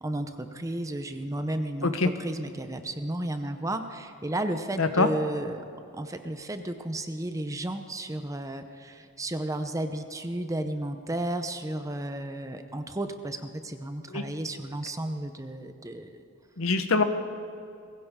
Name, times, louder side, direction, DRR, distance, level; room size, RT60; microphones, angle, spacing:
voice 1, 0.0-5.6 5.9-16.2, right 1 dB, 15° right, 8 dB, 0.7 m, -33 dB
voice 2, 4.8-5.1 14.1-14.2 16.6-17.0, left 3 dB, 65° left, 9 dB, 1.0 m, -24 dB
20.5 x 16.5 x 3.7 m, 2.6 s
head